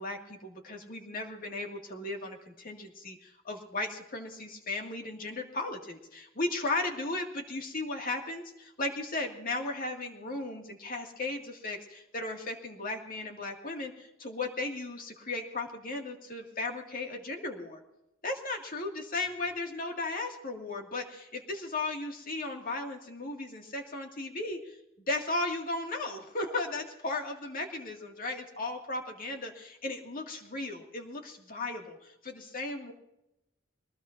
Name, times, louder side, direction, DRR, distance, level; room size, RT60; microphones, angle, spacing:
voice 1, 0.0-17.8 18.2-24.8 25.1-32.9, left 2 dB, 45° left, 3 dB, 2.1 m, -36 dB
22.5 x 19.5 x 2.6 m, 0.87 s
head